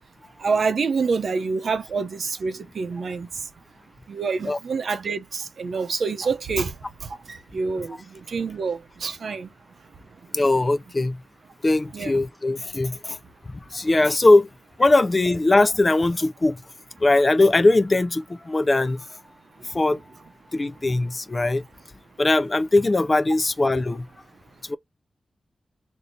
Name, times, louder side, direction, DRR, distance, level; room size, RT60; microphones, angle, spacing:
voice 1, 0.4-3.3 4.1-6.8 7.0-9.5 11.9-12.2, right 4 dB, 70° right, 0.7 m, -27 dB
voice 2, 10.3-11.2 11.6-13.2 13.7-14.5 14.8-16.6 17.0-19.0 19.7-20.0 20.5-21.6 22.2-24.0 24.7-24.8, left 2 dB, 25° left, 0.4 m, -20 dB
3.1 x 2.7 x 3.9 m
wide cardioid pair, 125°, 0 cm